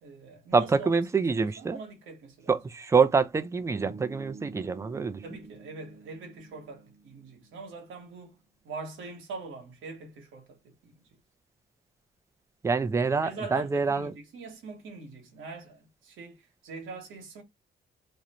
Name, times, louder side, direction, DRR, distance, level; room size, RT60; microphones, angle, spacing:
voice 1, 0.0-2.5 5.2-8.4 8.6-10.9 13.2-17.4, right 3 dB, 80° right, 1.0 m, -43 dB
voice 2, 0.5-1.8 2.5-5.2 12.6-14.1, right 5 dB, 15° right, 0.3 m, -26 dB
Bass guitar, 3.7-7.8, right 4 dB, 35° right, 0.8 m, -49 dB
2.5 x 2.1 x 2.8 m
cardioid pair, 90°, 20 cm